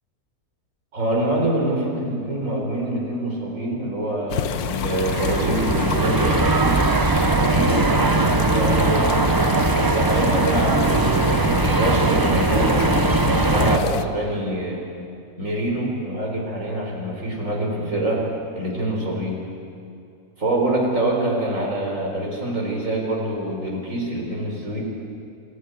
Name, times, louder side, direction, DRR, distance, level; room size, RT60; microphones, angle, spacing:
voice 1, 0.9-6.9 7.4-9.2 9.7-14.8 15.4-18.2 18.5-19.4 20.4-24.8, right 1 dB, 55° right, -1 dB, 4.6 m, -25 dB
sound 1, 4.3-14.0, left 10 dB, 80° left, 1.2 m, -29 dB
sound 2, 4.6-13.8, right 3 dB, 35° right, 0.3 m, -20 dB
25.5 x 13.5 x 9.4 m, 2.5 s
omnidirectional pair, 1.6 m